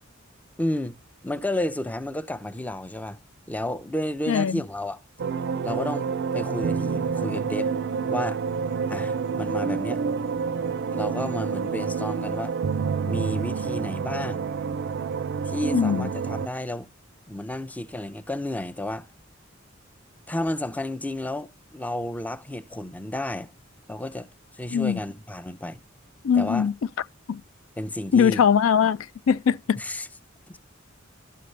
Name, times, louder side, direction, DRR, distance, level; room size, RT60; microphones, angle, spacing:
voice 1, 0.6-1.0 1.2-3.2 3.5-5.0 5.6-7.7 8.1-8.4 8.9-10.0 10.9-12.6 13.0-14.4 15.4-16.9 17.3-19.1 20.3-23.5 23.9-24.3 24.5-25.8 26.4-26.7 27.8-28.4 29.8-30.1 30.5-30.6, left 1 dB, 10° left, 0.5 m, -31 dB
voice 2, 4.3-4.6 15.7-16.1 24.7-25.0 26.2-26.7 27.3-27.4 28.1-29.0 29.3-29.8, left 7 dB, 85° left, 0.4 m, -21 dB
sound 1, 5.2-16.5, right 6 dB, 60° right, 0.4 m, -28 dB
12.0 x 6.6 x 3.2 m
head